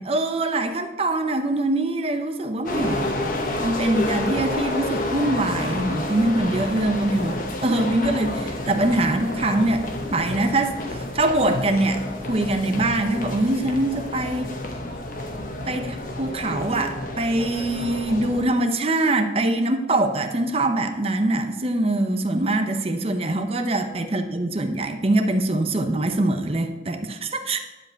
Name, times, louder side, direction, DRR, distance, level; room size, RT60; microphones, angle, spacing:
voice 1, 0.0-3.1 3.6-9.8 10.1-14.5 15.7-27.6, right 2 dB, 35° right, 7 dB, 0.7 m, -23 dB
sound 1, 2.7-18.5, left 1 dB, 50° left, 1.2 m, -30 dB
11.0 x 5.1 x 7.5 m, 1.1 s
head